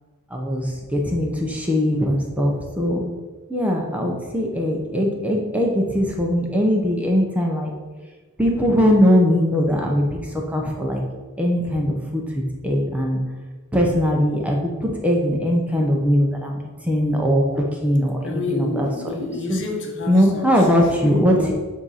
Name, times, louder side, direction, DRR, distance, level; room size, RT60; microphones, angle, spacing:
voice 1, 0.3-3.1 3.5-7.7 8.4-11.0 11.4-12.2 12.6-13.2 13.7-16.6 16.8-18.9 19.5-19.6 20.1-21.5, equal, 5° right, 0 dB, 0.7 m, -20 dB
voice 2, 18.2-20.7 20.9-21.5, left 2 dB, 60° left, 2 dB, 1.0 m, -29 dB
7.6 x 2.8 x 5.6 m, 1.3 s
head